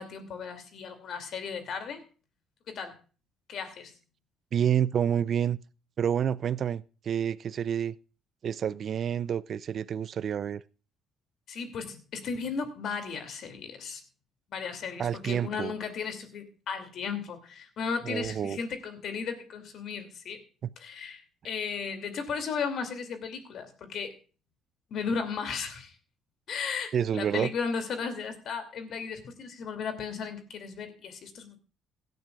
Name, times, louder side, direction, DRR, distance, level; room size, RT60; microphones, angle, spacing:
voice 1, 0.0-2.0 2.7-3.0 3.5-3.9 11.5-14.0 14.5-20.4 20.8-24.1 24.9-25.9 26.5-31.6, left 5 dB, 60° left, 2.6 m, -35 dB
voice 2, 4.5-5.6 6.0-8.0 8.4-10.6 15.0-15.7 18.1-18.6 26.9-27.5, right 8 dB, 55° right, 0.5 m, -28 dB
17.0 x 12.0 x 2.4 m
hypercardioid pair, 55°, 0 cm